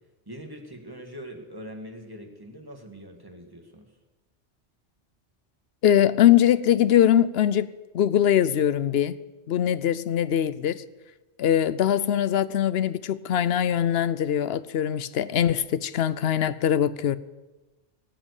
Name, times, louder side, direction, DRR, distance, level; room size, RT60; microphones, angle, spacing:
voice 1, 0.3-3.9, equal, 20° right, 1.8 m, -42 dB
voice 2, 5.8-7.7 7.9-9.2 9.5-10.8 11.4-17.2, left 10 dB, 65° left, 0.8 m, -22 dB
18.5 x 7.7 x 8.2 m
omnidirectional pair, 1.2 m